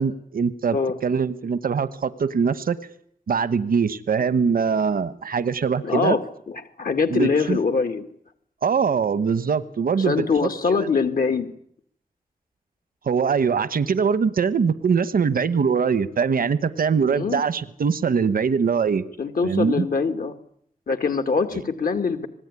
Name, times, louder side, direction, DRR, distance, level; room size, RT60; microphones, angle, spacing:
voice 1, 0.0-0.8 1.0-2.8 3.3-6.2 7.1-7.6 8.6-10.9 13.1-19.0 19.4-19.9, right 6 dB, 85° right, 14 dB, 1.2 m, -22 dB
voice 2, 5.8-6.2 6.5-8.0 10.0-11.5 17.1-17.4 19.2-20.3 20.9-22.3, left 5 dB, 80° left, 8 dB, 2.1 m, -23 dB
26.5 x 19.5 x 9.8 m, 0.68 s
cardioid pair, 45°, 15 cm